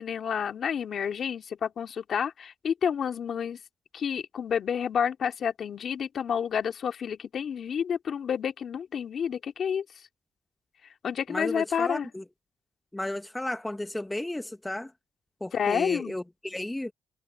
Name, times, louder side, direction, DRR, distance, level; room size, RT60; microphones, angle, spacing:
voice 1, 0.0-3.6 3.9-9.8 11.0-12.1 15.5-16.2, left 7 dB, 60° left, 2.4 m, -29 dB
voice 2, 11.3-12.2 12.9-14.9 15.4-16.9, left 1 dB, 10° left, 1.2 m, -33 dB
cardioid pair, 90°, 0 cm